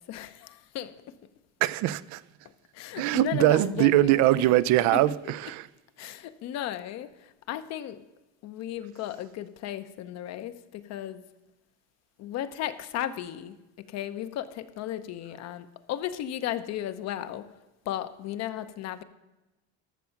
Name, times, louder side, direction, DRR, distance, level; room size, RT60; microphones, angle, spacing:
voice 1, 0.1-0.9 2.7-4.5 4.9-5.0 6.0-8.0 8.4-11.2 12.2-17.5 17.9-19.0, left 11 dB, 55° left, 0.8 m, -35 dB
voice 2, 1.6-2.2 3.0-5.7, right 15 dB, 65° right, 0.5 m, -22 dB
13.5 x 6.3 x 5.8 m
cardioid pair, 115°, 31 cm